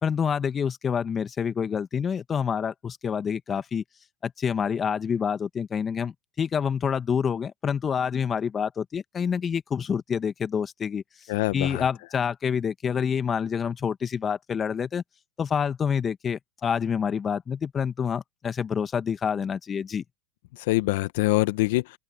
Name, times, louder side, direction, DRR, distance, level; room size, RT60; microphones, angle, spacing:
voice 1, 0.0-3.8 4.2-11.0 11.5-15.0 15.4-20.0, left 7 dB, 25° left, 1.6 m, -27 dB
voice 2, 11.3-11.9 20.6-22.0, left 20 dB, 60° left, 1.3 m, -24 dB
open air
hypercardioid pair, 100°, 0 cm